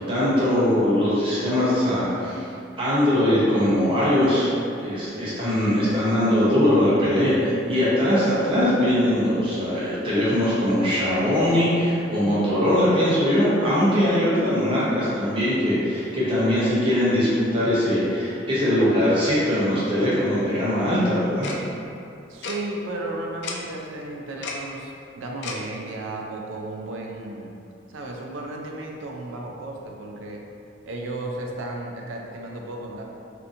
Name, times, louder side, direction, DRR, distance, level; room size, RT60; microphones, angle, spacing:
voice 1, 0.0-2.5 2.8-4.5 4.8-21.6, left 1 dB, 25° right, -9 dB, 0.7 m, -21 dB
Tick-tock, 21.4-21.6 22.4-22.6 23.4-23.6 24.4-24.6 25.4-25.6, left 4 dB, 60° left, 0.3 m, -31 dB
voice 2, 22.3-27.5 27.9-30.4 30.8-33.0, right 2 dB, 85° right, 0 dB, 0.4 m, -34 dB
2.8 x 2.5 x 2.5 m, 2.6 s
head